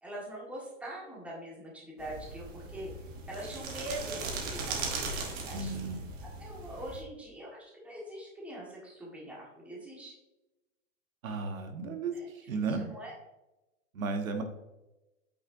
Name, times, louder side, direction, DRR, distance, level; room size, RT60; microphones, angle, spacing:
voice 1, 0.0-2.9 3.3-6.0 6.4-10.1 12.1-12.3 12.7-13.1, right 1 dB, 5° right, -5 dB, 1.6 m, -43 dB
sound 1, 2.0-7.0, right 3 dB, 25° right, 1.1 m, -38 dB
voice 2, 5.5-6.1 11.2-12.1 12.5-12.9 13.9-14.4, right 4 dB, 90° right, 5 dB, 1.4 m, -34 dB
8.4 x 5.7 x 2.7 m, 1.0 s
hypercardioid pair, 155°, 39 cm